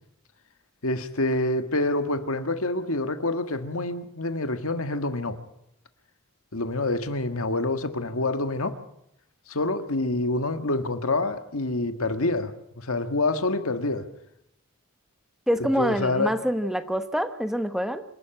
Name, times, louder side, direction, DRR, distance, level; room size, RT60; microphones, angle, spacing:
voice 1, 0.8-5.4 6.5-8.8 9.5-14.1 15.8-16.3, left 2 dB, 80° left, 1.7 m, -27 dB
voice 2, 15.5-18.0, equal, ahead, 1.0 m, -26 dB
26.5 x 12.0 x 9.0 m
head